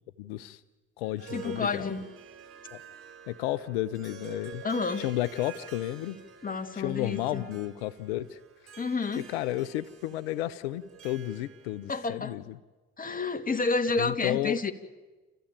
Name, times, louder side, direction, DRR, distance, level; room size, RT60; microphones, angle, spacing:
voice 1, 0.2-0.6 1.0-1.9 2.7-2.8 3.3-4.6 5.0-6.2 6.7-8.4 9.3-12.4 14.0-14.6, left 14 dB, 85° left, 15 dB, 0.6 m, -32 dB
Harp, 1.0-11.9, right 8 dB, 45° right, 4.7 m, -49 dB
voice 2, 1.3-2.0 4.6-5.0 6.4-7.4 8.8-9.2 11.9-12.4 13.0-14.7, left 4 dB, 25° left, 7 dB, 2.1 m, -30 dB
29.0 x 14.5 x 8.9 m, 1.2 s
hypercardioid pair, 55°, 30 cm